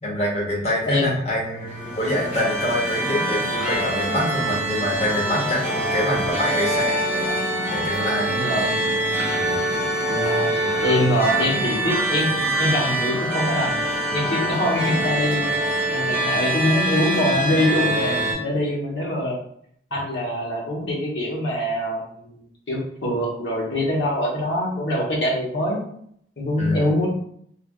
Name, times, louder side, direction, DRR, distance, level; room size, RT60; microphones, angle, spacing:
voice 1, 0.0-7.0 7.7-8.3 9.3-9.6 10.6-10.7 26.6-26.9, equal, 35° left, -3 dB, 0.9 m, -25 dB
sound 1, 1.6-18.3, right 1 dB, 10° right, 0.8 m, -24 dB
voice 2, 8.2-8.7 10.1-10.5 10.8-13.8 14.1-15.4 15.9-19.4 19.9-25.8 26.4-27.1, left 1 dB, 80° left, -3 dB, 1.0 m, -24 dB
3.2 x 2.3 x 2.3 m, 0.67 s
head